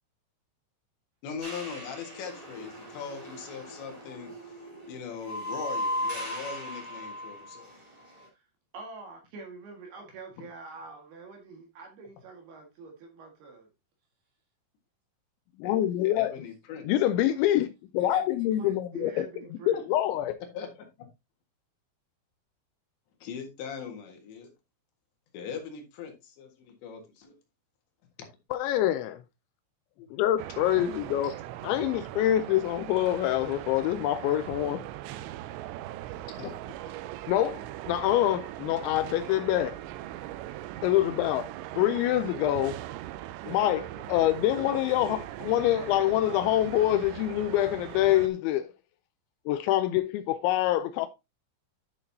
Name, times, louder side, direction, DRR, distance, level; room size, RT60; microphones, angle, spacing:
voice 1, 1.2-7.7 10.4-10.5 15.6-15.8 16.0-16.9 19.7-19.8 20.5-21.1 23.2-24.5 25.3-27.4 30.0-30.1 31.2-31.4 35.8-35.9 36.4-36.9, left 6 dB, 65° left, 3.7 m, -40 dB
sound 1, 1.4-7.7 8.0-8.2, equal, 25° right, 0.8 m, -37 dB
voice 2, 8.7-13.7 18.0-19.8, right 4 dB, 60° right, 3.2 m, -45 dB
voice 3, 15.6-16.3 16.9-19.2 19.7-20.4 28.5-29.2 30.1-31.4 31.6-34.8 37.3-39.8 40.8-41.5 41.8-42.8 43.5-48.7 49.5-51.1, left 13 dB, 85° left, 2.6 m, -26 dB
sound 2, 30.4-48.3, right 14 dB, 90° right, 2.5 m, -40 dB
10.5 x 6.4 x 2.7 m
omnidirectional pair, 5.7 m